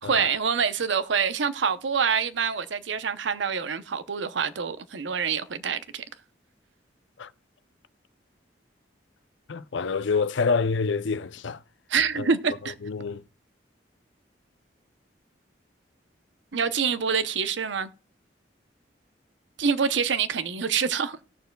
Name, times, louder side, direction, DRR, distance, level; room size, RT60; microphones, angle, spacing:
voice 1, 0.0-6.0 11.9-12.7 16.5-17.9 19.6-21.2, right 6 dB, 80° right, 0.7 m, -26 dB
voice 2, 9.5-11.6 12.8-13.2, left 4 dB, 85° left, 0.5 m, -26 dB
18.0 x 6.7 x 2.2 m
head